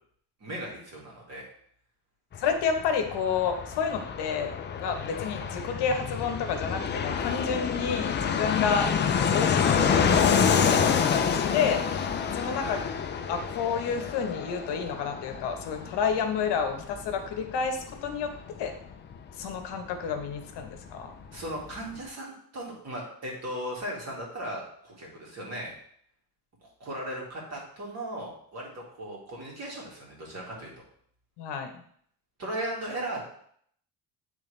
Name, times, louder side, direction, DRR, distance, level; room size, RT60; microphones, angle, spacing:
voice 1, 0.4-1.5 12.6-12.8 21.3-25.7 26.6-30.7 32.4-33.2, right 1 dB, 35° right, -3 dB, 2.1 m, -37 dB
Fixed-wing aircraft airplane, 2.3-20.7 21.0-21.1 21.3-22.0, left 7 dB, 25° left, 0.4 m, -28 dB
voice 2, 2.4-4.5 4.8-8.9 9.3-11.8 12.3-12.8 13.3-18.3 18.6-18.7 19.4-21.2 31.4-31.8, left 6 dB, 70° left, 5 dB, 1.0 m, -30 dB
8.6 x 3.4 x 3.2 m, 0.64 s
cardioid pair, 150°, 43 cm